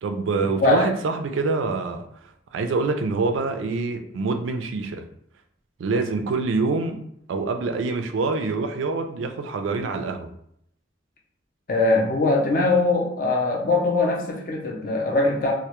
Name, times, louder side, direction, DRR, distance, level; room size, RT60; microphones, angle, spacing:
voice 1, 0.0-2.1 2.5-5.0 5.8-7.0 7.3-10.3, right 3 dB, 85° right, 6 dB, 0.3 m, -25 dB
voice 2, 11.7-15.5, left 2 dB, 45° left, 0 dB, 0.4 m, -21 dB
2.1 x 2.1 x 2.9 m, 0.71 s
head